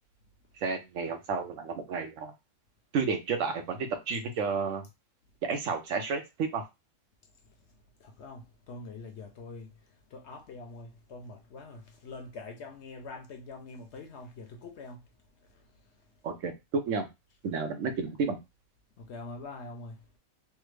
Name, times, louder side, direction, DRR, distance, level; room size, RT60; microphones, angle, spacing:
voice 1, 0.6-2.3 2.9-4.8 5.4-6.6 16.2-16.5 16.9-17.1 17.4-18.4, right 5 dB, 70° right, 1.0 m, -31 dB
voice 2, 8.0-9.7 10.1-15.1 15.5-15.6 19.0-20.0, left 3 dB, 65° left, 0.8 m, -44 dB
3.4 x 2.1 x 3.1 m
omnidirectional pair, 1.4 m